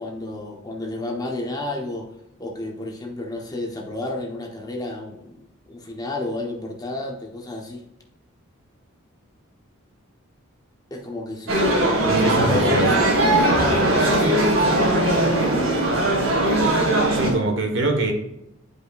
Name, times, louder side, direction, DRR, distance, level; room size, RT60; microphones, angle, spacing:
voice 1, 0.0-2.1 2.4-7.8 10.9-13.1 13.4-15.3, left 2 dB, 20° left, 1 dB, 1.0 m, -31 dB
sound 1, 11.5-17.3, right 1 dB, 80° right, 1.9 m, -19 dB
voice 2, 12.1-12.9 17.1-18.1, right 2 dB, 60° right, 3 dB, 1.3 m, -23 dB
11.0 x 5.0 x 2.4 m, 0.84 s
head